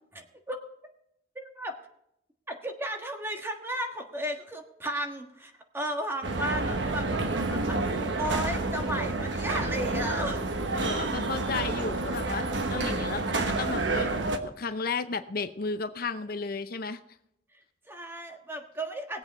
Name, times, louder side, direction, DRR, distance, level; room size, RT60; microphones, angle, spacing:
voice 1, 0.1-0.6 1.3-1.8 2.5-10.5 17.5-19.2, right 1 dB, 15° right, 4 dB, 1.4 m, -35 dB
sound 1, 6.2-14.4, right 2 dB, 85° right, 1.2 m, -29 dB
voice 2, 10.7-12.4 12.7-14.1 14.4-17.0, left 4 dB, 55° left, 10 dB, 0.6 m, -33 dB
20.0 x 8.1 x 4.1 m, 0.76 s
head